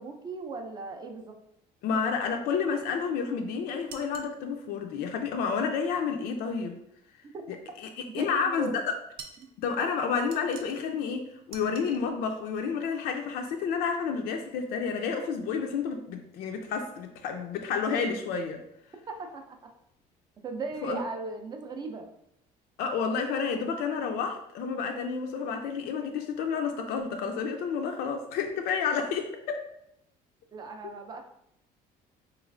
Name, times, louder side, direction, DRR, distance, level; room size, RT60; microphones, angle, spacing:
voice 1, 0.0-1.4 7.2-7.4 8.1-8.8 9.4-9.5 19.1-19.7 20.4-22.1 30.5-31.2, right 4 dB, 25° right, 4 dB, 0.4 m, -37 dB
voice 2, 1.8-6.8 8.1-8.7 9.6-18.6 20.8-21.0 22.8-29.6 30.8-30.9, left 6 dB, 70° left, 4 dB, 0.4 m, -30 dB
sound 1, 3.9-4.4 9.2-9.5 10.3-10.9 11.5-12.0, right 6 dB, 80° right, 0.5 m, -46 dB
4.0 x 3.0 x 2.5 m, 0.77 s
cardioid pair, 170°, 16 cm